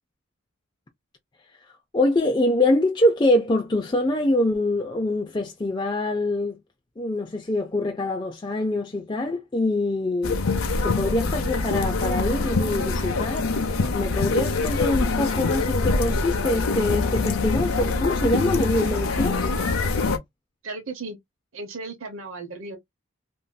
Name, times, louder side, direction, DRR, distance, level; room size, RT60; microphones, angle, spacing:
voice 1, 1.9-6.6 7.0-10.4 10.8-13.5 13.9-19.5, left 1 dB, 20° left, 0.4 m, -24 dB
sound 1, 10.2-20.2, left 3 dB, 85° left, 0.6 m, -24 dB
voice 2, 20.6-21.2 21.5-22.8, right 3 dB, 75° right, 0.9 m, -35 dB
3.0 x 2.7 x 2.2 m
head